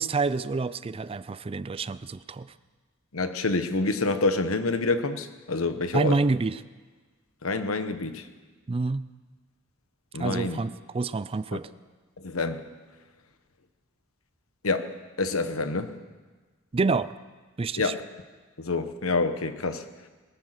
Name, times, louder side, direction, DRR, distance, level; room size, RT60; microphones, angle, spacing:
voice 1, 0.0-2.5 5.9-6.6 8.7-9.0 10.2-11.7 16.7-17.1 17.6-17.9, right 3 dB, 25° right, 16 dB, 0.4 m, -28 dB
voice 2, 3.1-6.1 7.4-8.2 10.1-10.6 12.2-12.6 14.6-15.9 17.8-18.0 18.6-19.9, left 3 dB, 85° left, 10 dB, 1.1 m, -27 dB
21.0 x 10.5 x 6.6 m, 1.3 s
head